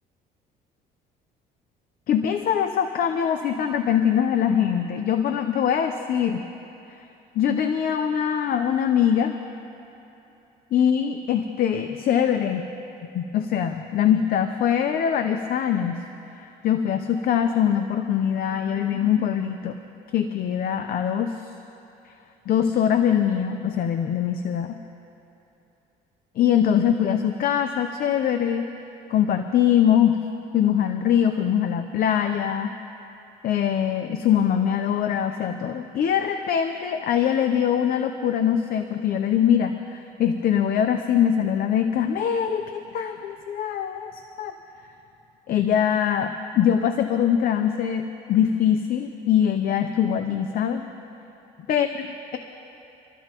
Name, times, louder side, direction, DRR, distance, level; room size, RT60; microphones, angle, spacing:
voice 1, 2.1-6.4 7.3-9.4 10.7-12.7 13.1-16.0 16.3-19.8 20.1-21.3 22.5-24.8 26.4-28.7 29.1-30.2 30.5-32.7 33.4-44.5 45.5-50.8 51.7-52.1, left 9 dB, 60° left, 6 dB, 0.7 m, -23 dB
26.0 x 13.5 x 3.0 m, 2.9 s
cardioid pair, 110°, 17 cm